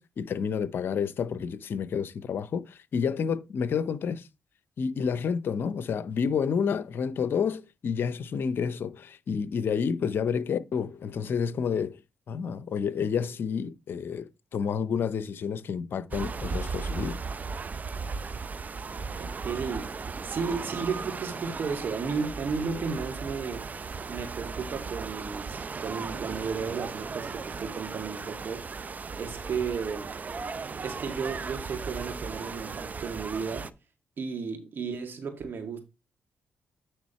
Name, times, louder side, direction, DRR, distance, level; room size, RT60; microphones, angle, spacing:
voice 1, 0.0-4.3 4.8-12.0 12.3-17.2, left 6 dB, 65° left, 0.7 m, -29 dB
sound 1, 16.1-33.7, right 4 dB, 45° right, 0.6 m, -36 dB
voice 2, 19.2-19.9 20.2-23.6 24.1-28.6 29.2-30.1 30.8-33.7 34.2-35.8, right 5 dB, 60° right, 2.1 m, -33 dB
9.3 x 3.6 x 4.3 m
supercardioid pair, 55°, 4 cm